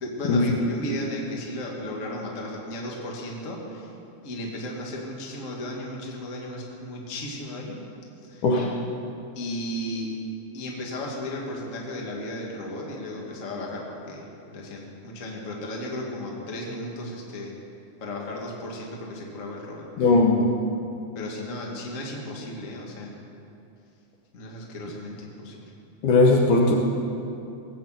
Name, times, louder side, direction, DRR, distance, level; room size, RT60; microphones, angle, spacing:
voice 1, 0.0-3.9 4.2-7.8 8.2-8.4 9.3-10.1 10.5-17.5 18.0-19.8 21.1-23.1 24.3-25.6, left 1 dB, 30° left, -2 dB, 1.6 m, -35 dB
voice 2, 20.0-20.6 26.0-26.8, left 2 dB, 65° left, 0 dB, 2.3 m, -19 dB
18.5 x 8.7 x 7.6 m, 2.7 s
omnidirectional pair, 4.4 m